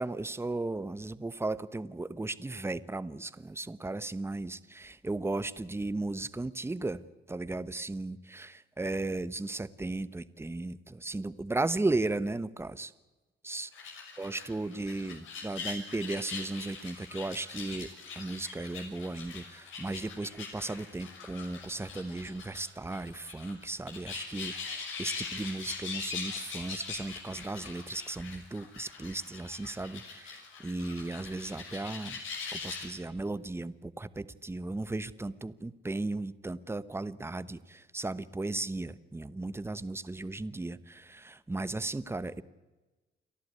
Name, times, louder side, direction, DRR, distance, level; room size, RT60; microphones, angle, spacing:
voice 1, 0.0-7.0 7.3-12.9 13.4-13.7 14.2-17.9 18.2-32.2 32.5-42.4, right 2 dB, 10° right, 16 dB, 1.0 m, -36 dB
sound 1, 13.7-32.9, left 5 dB, 80° left, 6.2 m, -42 dB
29.5 x 11.5 x 9.7 m, 1.2 s
cardioid pair, 90°, 20 cm